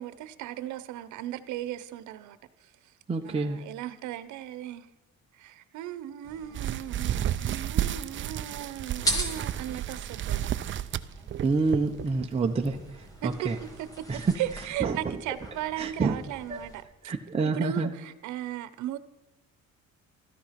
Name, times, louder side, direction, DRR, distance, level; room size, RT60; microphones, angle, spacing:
voice 1, 0.0-2.9 3.2-4.9 5.3-10.5 13.2-17.1 17.4-19.0, right 12 dB, 80° right, 14 dB, 1.0 m, -37 dB
voice 2, 3.1-3.6 11.4-12.8 13.2-13.5 14.1-14.3 14.8-15.0 15.8-16.2 16.5-16.6 17.1-17.9, right 4 dB, 20° right, 1 dB, 1.0 m, -27 dB
sound 1, 6.2-16.8, right 1 dB, 10° left, 2.5 m, -40 dB
sound 2, 6.5-12.3 12.7-12.9 13.5-13.6 14.0-14.1, right 11 dB, 45° right, 0.6 m, -31 dB
13.5 x 13.5 x 5.9 m, 1.1 s
cardioid pair, 135°, 29 cm